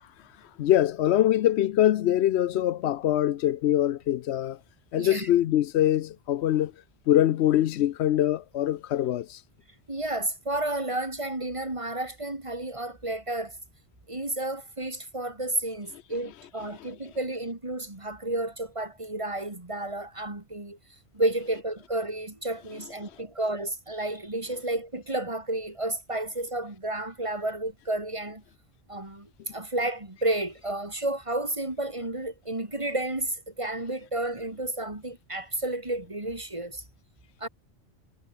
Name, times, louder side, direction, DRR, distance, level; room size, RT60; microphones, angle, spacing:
voice 1, 0.6-4.6 4.9-6.7 7.1-9.4, left 12 dB, 80° left, 0.9 m, -23 dB
voice 2, 5.0-5.3 9.9-13.5 14.1-20.8 21.1-28.4 28.9-36.8 37.4-37.5, right 1 dB, 30° right, 2.6 m, -31 dB
omnidirectional pair, 1.1 m